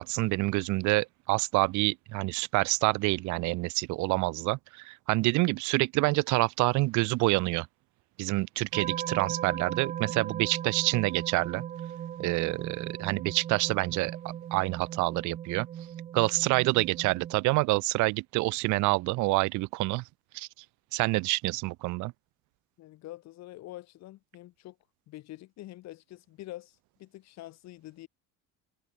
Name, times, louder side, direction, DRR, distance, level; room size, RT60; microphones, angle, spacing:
voice 1, 0.0-7.7 8.2-11.6 12.2-15.7 16.1-20.0 20.3-20.5 20.9-22.1, right 22 dB, 60° right, 1.0 m, -27 dB
sound 1, 8.7-17.3, right 10 dB, 25° right, 0.5 m, -38 dB
voice 2, 22.8-24.8 25.1-28.1, left 16 dB, 50° left, 7.6 m, -46 dB
cardioid pair, 170°, 33 cm